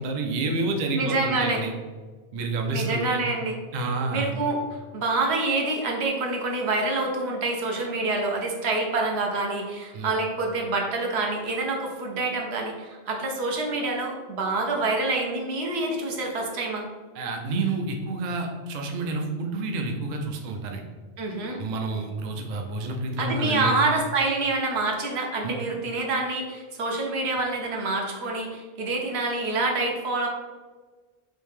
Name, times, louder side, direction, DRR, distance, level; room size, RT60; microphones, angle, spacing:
voice 1, 0.0-1.7 2.3-3.2 3.7-4.3 9.9-10.1 17.1-20.8 21.6-23.8 25.4-25.5, right 3 dB, 55° right, 2 dB, 0.5 m, -29 dB
voice 2, 1.0-1.6 2.7-3.5 4.1-16.9 21.2-21.6 23.2-30.3, right 2 dB, 80° right, 0 dB, 0.9 m, -27 dB
3.1 x 2.7 x 3.5 m, 1.4 s
omnidirectional pair, 1.1 m